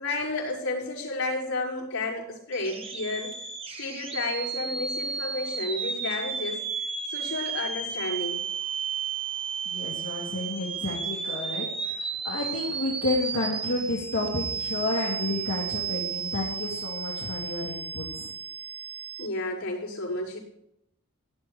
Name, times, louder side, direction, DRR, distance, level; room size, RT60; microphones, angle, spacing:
voice 1, 0.0-3.3 3.8-6.6 7.1-8.4 19.2-20.4, left 2 dB, 85° left, -7 dB, 5.7 m, -31 dB
sound 1, 2.5-19.3, right 5 dB, 25° right, 1.1 m, -33 dB
voice 2, 9.7-18.3, left 2 dB, 65° left, -4 dB, 2.1 m, -31 dB
17.0 x 10.5 x 3.4 m, 0.81 s
head